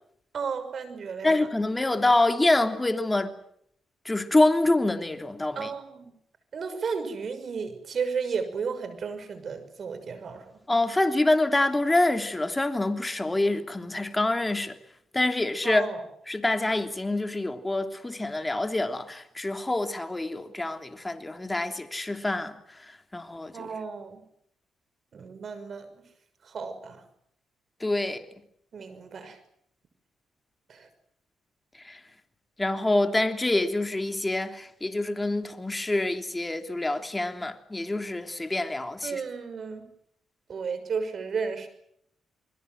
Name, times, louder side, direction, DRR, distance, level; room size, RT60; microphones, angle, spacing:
voice 1, 0.3-1.5 5.6-6.1 6.5-10.4 15.6-16.0 23.5-24.2 25.1-25.9 26.4-27.0 28.7-29.4 30.7-30.9 39.0-39.9 40.5-41.7, right 5 dB, 55° right, 6.2 m, -33 dB
voice 2, 1.2-3.3 4.0-5.7 10.7-14.7 15.1-15.9 16.3-22.6 23.1-23.7 27.8-28.2 31.8-32.0 32.6-39.2, left 2 dB, 15° left, 3.2 m, -26 dB
28.0 x 21.5 x 7.8 m
supercardioid pair, 70°, 0 cm